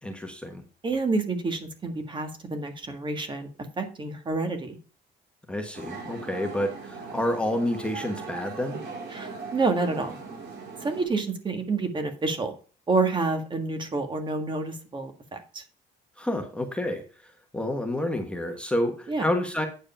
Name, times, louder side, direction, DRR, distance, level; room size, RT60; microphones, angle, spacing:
voice 1, 0.0-0.6 5.5-8.8 16.2-19.7, left 1 dB, 5° left, 3 dB, 1.3 m, -29 dB
voice 2, 0.8-3.5 3.8-4.8 9.1-10.2 10.8-12.5 12.9-15.6 19.1-19.3, right 3 dB, 30° right, 6 dB, 1.7 m, -28 dB
sound 1, 5.7-11.1, right 4 dB, 85° right, 4.3 m, -39 dB
9.1 x 4.8 x 5.5 m, 0.37 s
cardioid pair, 110°, 17 cm